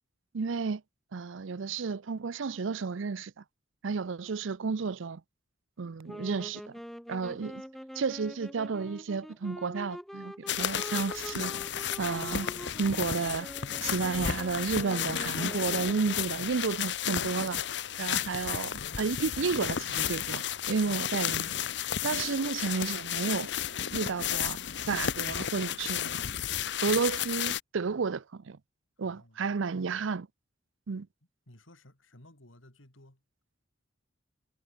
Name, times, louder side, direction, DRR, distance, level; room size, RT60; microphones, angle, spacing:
voice 1, 0.3-0.8 1.1-3.3 3.8-5.2 5.8-6.6 7.1-7.6 8.0-11.5 12.0-12.5 12.8-13.5 13.8-17.6 18.0-21.5 22.0-23.5 23.9-24.6 24.9-26.1 26.8-28.6 29.0-30.3 30.9-31.1, right 5 dB, 75° right, 0.5 m, -32 dB
sound 1, 6.1-16.4, equal, ahead, 1.5 m, -45 dB
sound 2, 10.5-27.6, left 9 dB, 60° left, 0.8 m, -33 dB
voice 2, 29.0-29.5 31.5-33.2, left 1 dB, 80° left, 4.0 m, -56 dB
head